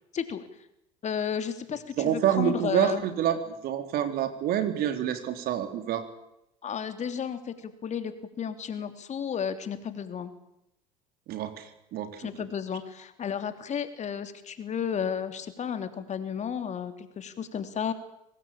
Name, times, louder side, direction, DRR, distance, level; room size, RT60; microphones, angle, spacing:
voice 1, 0.1-0.5 1.0-3.0 6.6-10.3 12.2-17.9, left 7 dB, 40° left, 9 dB, 3.2 m, -33 dB
voice 2, 2.0-6.1 11.3-12.1, right 10 dB, 60° right, 8 dB, 3.9 m, -27 dB
25.0 x 19.5 x 8.9 m, 0.84 s
hypercardioid pair, 75°, 18 cm